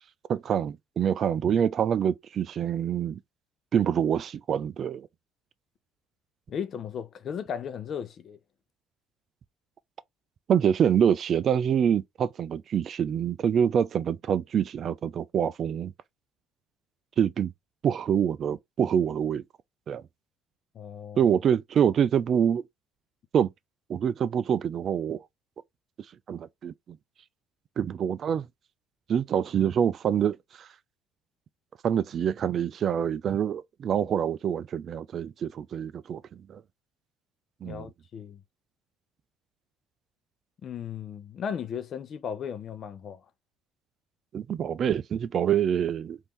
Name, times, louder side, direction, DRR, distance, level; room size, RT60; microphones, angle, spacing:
voice 1, 0.3-3.2 3.7-5.1 10.5-15.9 17.2-17.5 17.8-19.4 19.9-20.0 21.2-22.6 23.3-23.5 23.9-25.2 26.3-27.0 27.8-28.5 29.1-30.7 31.8-36.2 36.5-36.6 37.6-37.9 44.3-46.2, right 8 dB, 45° right, 0.3 m, -26 dB
voice 2, 6.5-8.4 20.7-21.3 37.6-38.4 40.6-43.2, left 7 dB, 45° left, 0.6 m, -36 dB
3.5 x 2.7 x 3.0 m
cardioid pair, 110°, 0 cm